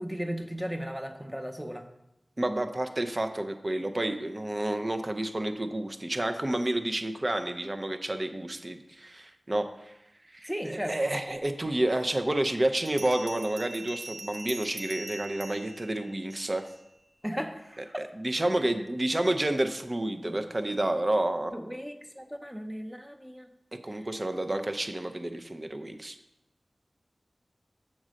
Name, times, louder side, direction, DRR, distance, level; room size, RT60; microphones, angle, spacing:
voice 1, 0.0-1.9 10.5-11.0 17.2-18.0 20.2-20.4 21.5-23.5 23.8-24.1, equal, 5° right, 6 dB, 0.8 m, -36 dB
voice 2, 2.4-9.9 10.3-16.6 17.8-21.5 23.8-26.2, right 1 dB, 35° right, 7 dB, 0.5 m, -30 dB
Bell, 12.9-16.7, right 2 dB, 75° right, 0.6 m, -42 dB
7.4 x 3.9 x 6.3 m, 0.90 s
wide cardioid pair, 75°, 0 cm